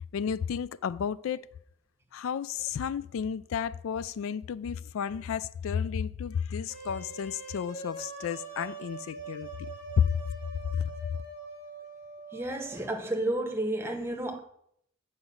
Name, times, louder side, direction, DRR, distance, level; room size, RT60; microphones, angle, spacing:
voice 1, 0.1-1.5 2.1-9.5 10.0-10.1 10.7-10.9, left 7 dB, 90° left, 0.3 m, -32 dB
sound 1, 6.7-12.9, right 3 dB, 60° left, 4.1 m, -43 dB
voice 2, 12.3-14.4, right 1 dB, 10° right, 0.9 m, -31 dB
8.1 x 4.9 x 6.9 m
head